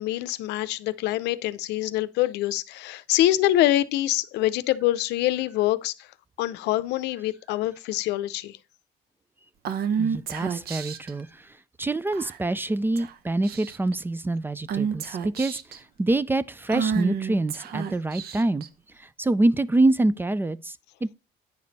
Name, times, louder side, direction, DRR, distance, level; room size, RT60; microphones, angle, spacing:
voice 1, 0.0-6.1 6.4-8.6, left 14 dB, 85° left, 0.6 m, -25 dB
Female speech woman speaking / Whispering, 9.6-11.1 12.1-12.5 13.0-13.1 13.4-13.9 14.7-15.8 16.7-18.7, right 7 dB, 65° right, 0.9 m, -29 dB
voice 2, 10.0-11.5 11.8-18.6 19.0-21.1, right 2 dB, 10° right, 0.4 m, -26 dB
9.5 x 5.1 x 4.0 m
cardioid pair, 110°, 17 cm